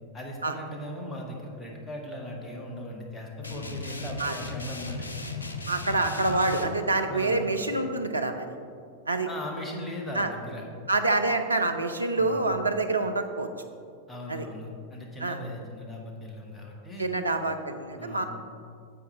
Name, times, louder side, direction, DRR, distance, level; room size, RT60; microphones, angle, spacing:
voice 1, 0.1-5.1 7.1-7.4 9.2-10.7 12.2-12.5 14.1-17.1 18.0-18.3, left 1 dB, 15° left, 0 dB, 1.6 m, -38 dB
sound 1, 3.4-6.7, left 3 dB, 75° left, 0.7 m, -36 dB
voice 2, 5.7-8.5 9.1-9.3 10.1-10.3 10.9-13.5 14.3-14.5 15.2-15.4 17.0-18.2, right 2 dB, 80° right, 5 dB, 0.6 m, -26 dB
10.0 x 7.9 x 3.4 m, 2.3 s
figure-of-eight pair, 90°, 0 cm